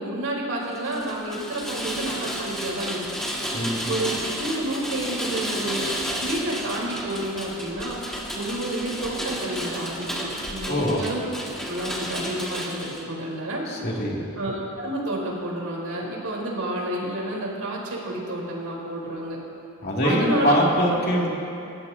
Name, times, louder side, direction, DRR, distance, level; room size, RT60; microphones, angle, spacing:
voice 1, 0.0-3.1 3.9-5.9 6.2-8.0 8.3-11.3 11.6-13.6 14.4-19.4 20.0-20.6, right 1 dB, 85° right, -3 dB, 4.4 m, -30 dB
Rain, 0.7-13.0, equal, ahead, 1.8 m, -32 dB
voice 2, 3.5-3.9 10.7-11.0 13.7-14.2 19.8-21.3, equal, 45° left, -4 dB, 2.9 m, -23 dB
28.5 x 15.5 x 3.0 m, 2.7 s
head